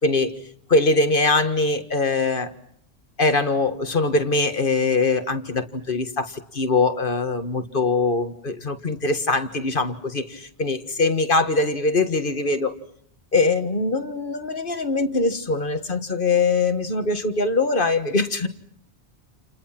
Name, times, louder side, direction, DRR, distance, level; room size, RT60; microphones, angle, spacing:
voice 1, 0.0-0.3 0.7-2.5 3.2-12.7 13.3-18.5, left 3 dB, 50° left, 8 dB, 1.8 m, -22 dB
30.0 x 29.0 x 5.9 m, 0.67 s
omnidirectional pair, 1.1 m